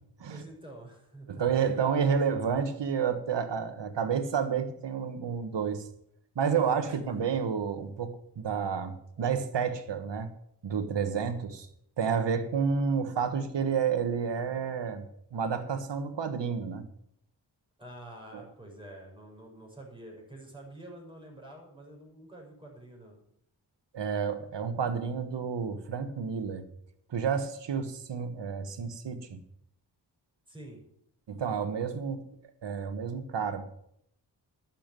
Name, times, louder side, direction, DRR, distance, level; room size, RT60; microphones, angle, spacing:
voice 1, 0.3-2.6 6.6-7.2 17.8-23.2 30.5-30.8, right 1 dB, 10° right, -1 dB, 6.3 m, -47 dB
voice 2, 1.3-5.8 6.3-10.3 10.6-11.7 12.0-15.0 15.3-16.9 18.3-18.4 23.9-26.6 27.1-29.4 31.3-32.3 32.6-33.6, right 6 dB, 80° right, 10 dB, 1.5 m, -30 dB
11.5 x 7.3 x 9.0 m, 0.73 s
cardioid pair, 60°, 42 cm